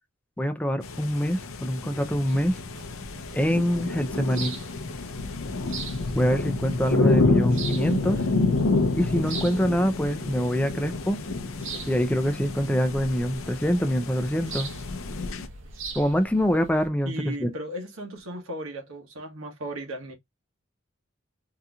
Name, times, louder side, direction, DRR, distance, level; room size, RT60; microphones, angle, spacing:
voice 1, 0.4-2.6 3.3-4.6 6.2-8.2 8.9-11.2 11.9-14.7 15.9-17.5, equal, 5° left, 0.4 m, -25 dB
sound 1, 0.8-15.5, left 3 dB, 75° left, 0.6 m, -28 dB
sound 2, 2.3-16.9, right 4 dB, 65° right, 0.8 m, -42 dB
voice 2, 17.0-20.1, right 1 dB, 80° right, 1.1 m, -36 dB
3.8 x 2.9 x 2.3 m
head